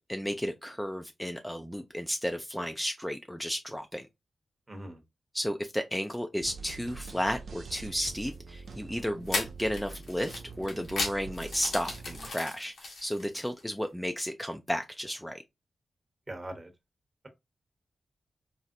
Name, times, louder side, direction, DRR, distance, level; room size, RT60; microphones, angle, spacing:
voice 1, 0.1-4.1 5.3-15.4, equal, 5° left, 0.3 m, -33 dB
voice 2, 4.7-5.0 16.3-16.7, right 1 dB, 35° right, 1.0 m, -40 dB
sound 1, 6.4-12.3, right 4 dB, 80° right, 0.3 m, -45 dB
sound 2, 8.1-8.3 9.3-13.6, left 3 dB, 90° left, 1.3 m, -36 dB
4.1 x 2.1 x 2.4 m
cardioid pair, 55°, 0 cm